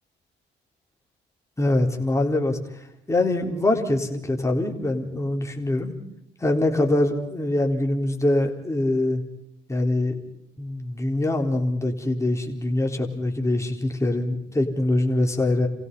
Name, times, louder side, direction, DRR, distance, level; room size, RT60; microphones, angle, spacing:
voice 1, 1.6-2.6 3.1-5.9 6.4-9.2 9.7-10.1 10.6-15.7, left 1 dB, 15° left, 2 dB, 4.0 m, -23 dB
29.0 x 16.5 x 5.5 m, 0.80 s
cardioid pair, 90°, 20 cm